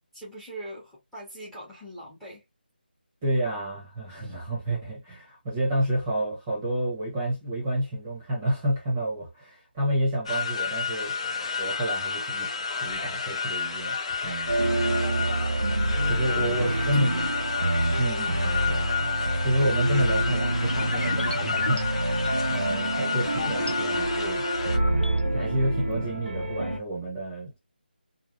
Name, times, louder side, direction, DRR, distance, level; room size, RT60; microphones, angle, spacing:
voice 1, 0.1-2.4 14.8-15.2 16.0-17.3, equal, ahead, 1.3 m, -43 dB
voice 2, 3.2-11.1 11.6-12.5 12.8-14.0 14.2-14.6 16.1-17.1 18.0-18.8 19.4-22.1 22.5-24.4 25.3-27.6, right 1 dB, 20° right, 1.2 m, -29 dB
sound 1, 10.3-24.8, left 6 dB, 30° left, 0.5 m, -31 dB
sound 2, 14.5-26.8, right 1 dB, 80° right, 1.3 m, -27 dB
sound 3, 20.7-23.7 24.2-25.2, left 2 dB, 75° left, 1.3 m, -36 dB
3.4 x 2.4 x 2.5 m
figure-of-eight pair, 165°, 6 cm